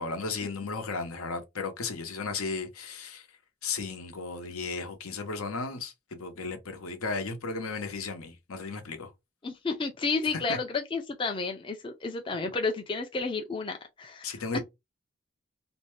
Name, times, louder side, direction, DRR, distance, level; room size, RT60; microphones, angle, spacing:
voice 1, 0.0-3.3 3.6-9.1 10.5-10.6 14.2-14.6, left 4 dB, 85° left, 0.8 m, -35 dB
voice 2, 9.4-14.3 14.5-14.6, left 4 dB, 25° left, 0.3 m, -31 dB
2.6 x 2.1 x 3.1 m
head